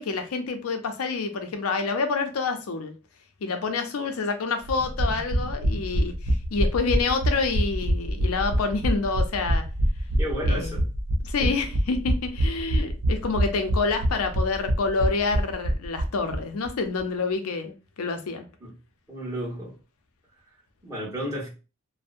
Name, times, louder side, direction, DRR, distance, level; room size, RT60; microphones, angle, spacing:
voice 1, 0.0-2.9 3.4-9.6 10.5-10.8 11.2-18.5, left 4 dB, 75° left, 0.5 m, -28 dB
sound 1, 4.7-16.4 16.7-16.8 17.0-17.1, equal, 90° right, 0.5 m, -25 dB
voice 2, 10.2-10.9 11.4-11.5 18.6-18.7 19.1-19.7 20.8-21.5, equal, 15° right, 1.1 m, -32 dB
2.6 x 2.0 x 2.4 m
head